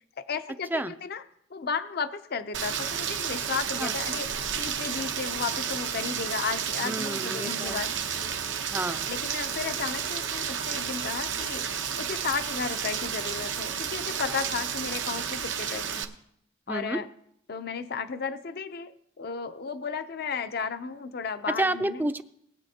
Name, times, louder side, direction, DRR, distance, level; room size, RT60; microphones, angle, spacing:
voice 1, 0.2-1.2 1.5-4.3 4.6-7.9 9.1-11.7 12.0-16.1 16.7-17.1 17.5-22.1, left 5 dB, 55° left, 11 dB, 0.6 m, -34 dB
Rain, 2.5-16.0, right 8 dB, 70° right, 0.8 m, -31 dB
voice 2, 6.8-7.8 8.7-9.1 16.7-17.0 21.6-22.2, right 1 dB, 10° right, 11 dB, 0.4 m, -30 dB
20.0 x 9.0 x 2.8 m, 0.73 s
head